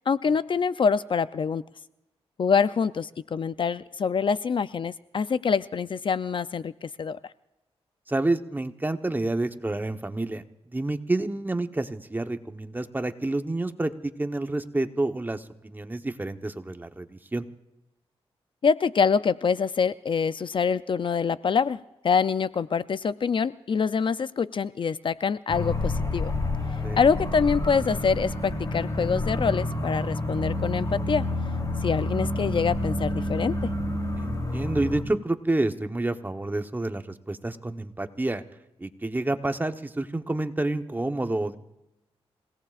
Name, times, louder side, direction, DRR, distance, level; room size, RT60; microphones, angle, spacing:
voice 1, 0.1-1.6 2.4-7.2 18.6-21.8 22.0-26.3 27.0-31.3 31.8-33.7, left 6 dB, 50° left, 14 dB, 0.5 m, -25 dB
voice 2, 8.1-17.4 26.8-27.0 34.2-38.4 38.8-41.6, right 2 dB, 15° right, 7 dB, 1.0 m, -29 dB
sound 1, 25.5-35.0, left 1 dB, 35° left, 3.1 m, -29 dB
28.5 x 17.5 x 2.5 m, 0.93 s
cardioid pair, 70°, 11 cm